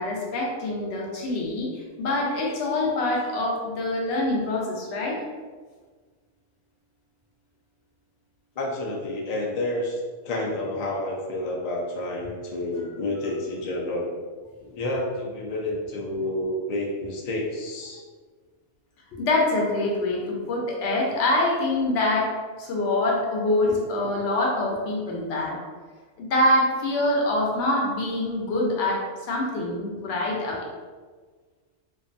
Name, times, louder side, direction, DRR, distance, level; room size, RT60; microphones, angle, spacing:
voice 1, 0.0-5.2 14.6-14.7 19.1-22.3 22.6-25.6 26.2-30.6, left 2 dB, 65° left, -2 dB, 0.8 m, -25 dB
voice 2, 8.6-14.1 14.7-18.0, left 1 dB, 80° left, -2 dB, 0.3 m, -29 dB
2.5 x 2.3 x 2.5 m, 1.4 s
omnidirectional pair, 1.3 m